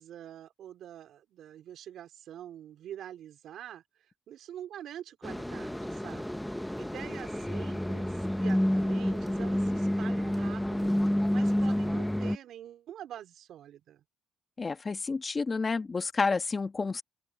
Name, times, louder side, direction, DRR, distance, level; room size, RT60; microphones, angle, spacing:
voice 1, 0.0-14.0, right 11 dB, 75° right, 4.0 m, -46 dB
sound 1, 5.2-12.4, equal, 5° left, 1.0 m, -29 dB
voice 2, 14.6-17.0, left 4 dB, 30° left, 2.1 m, -30 dB
open air
cardioid pair, 90°, 0 cm